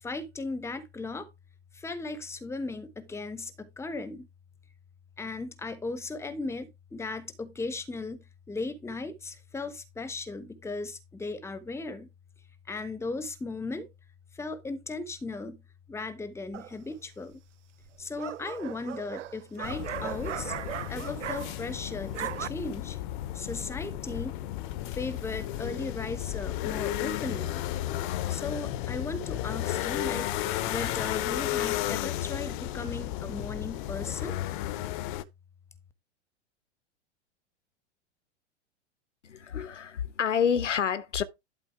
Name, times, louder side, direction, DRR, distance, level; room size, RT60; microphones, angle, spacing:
voice 1, 0.0-1.3 1.7-4.3 5.2-12.1 12.7-13.9 14.4-15.6 15.9-17.4 18.0-20.5 20.9-23.0 23.3-24.4 24.8-27.6 28.3-30.3 30.6-34.4, left 3 dB, 5° left, 1.1 m, -37 dB
sound 1, 16.5-17.0 17.9-21.8 22.0-22.5, right 11 dB, 80° right, 0.5 m, -38 dB
sound 2, 19.6-35.2, left 14 dB, 45° left, 0.9 m, -33 dB
voice 2, 39.2-41.2, left 7 dB, 80° left, 1.1 m, -28 dB
11.5 x 4.2 x 4.5 m
figure-of-eight pair, 100°, 36 cm